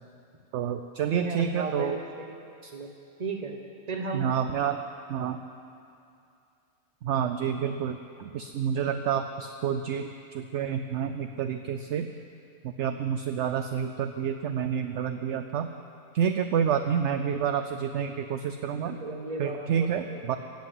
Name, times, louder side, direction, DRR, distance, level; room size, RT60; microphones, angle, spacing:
voice 1, 0.5-2.0 2.6-2.7 4.1-4.8 5.1-5.4 7.0-12.1 12.6-15.7 16.1-19.0 19.4-20.4, right 8 dB, 65° right, 8 dB, 0.7 m, -29 dB
voice 2, 1.1-2.3 2.7-2.9 3.2-3.5 3.9-4.3 18.8-20.2, right 3 dB, 30° right, 4 dB, 1.1 m, -35 dB
15.5 x 8.1 x 7.8 m, 2.5 s
omnidirectional pair, 1.5 m